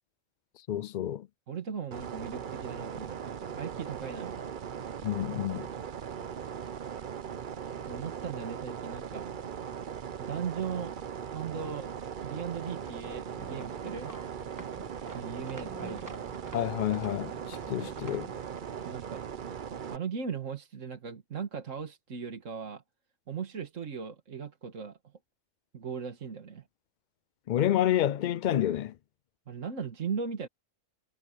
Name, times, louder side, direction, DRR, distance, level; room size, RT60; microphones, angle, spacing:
voice 1, 0.7-1.3 5.0-5.7 16.5-18.3 27.5-29.0, left 11 dB, 80° left, 0.4 m, -29 dB
voice 2, 1.5-4.6 7.9-9.3 10.2-10.9 11.3-11.9 12.2-14.1 15.1-16.2 18.9-19.2 19.9-22.8 23.3-25.0 25.7-26.6 29.5-30.5, right 6 dB, 70° right, 1.9 m, -38 dB
sound 1, 1.9-20.0, right 8 dB, 45° right, 0.8 m, -39 dB
sound 2, 12.6-18.6, right 1 dB, 15° right, 1.1 m, -50 dB
omnidirectional pair, 1.4 m